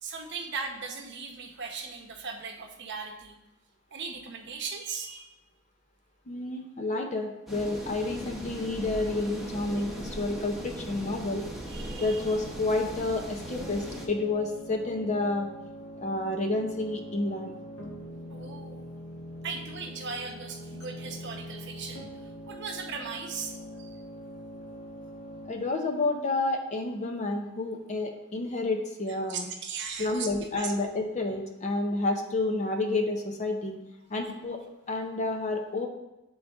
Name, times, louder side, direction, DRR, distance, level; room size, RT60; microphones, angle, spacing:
voice 1, 0.0-3.4 3.9-5.3 11.7-12.3 18.3-18.9 19.4-24.0 29.3-30.3 30.6-30.7, right 5 dB, 55° right, 3 dB, 0.8 m, -38 dB
voice 2, 6.3-11.4 12.0-15.5 16.0-17.5 25.5-29.5 30.0-33.8 34.1-34.6 34.9-35.9, left 2 dB, 35° left, 3 dB, 0.6 m, -30 dB
sound 1, 7.5-14.1, equal, ahead, 1.0 m, -39 dB
sound 2, 9.5-25.5, equal, 80° left, 1.6 m, -43 dB
8.4 x 3.9 x 3.5 m, 0.96 s
head